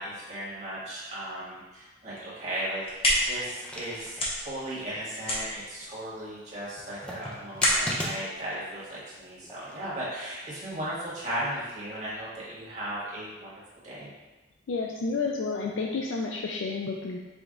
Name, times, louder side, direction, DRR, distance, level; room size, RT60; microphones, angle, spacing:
voice 1, 0.0-14.1, right 1 dB, 35° right, -8 dB, 1.4 m, -36 dB
sound 1, 2.6-9.4, left 1 dB, 30° left, 0.7 m, -30 dB
sound 2, 3.1-4.3 4.7-4.8 6.8-8.5 9.4-9.9, equal, 5° left, 0.4 m, -38 dB
voice 2, 14.7-17.2, left 4 dB, 75° left, 0 dB, 0.4 m, -30 dB
5.0 x 2.3 x 3.7 m, 1.2 s
head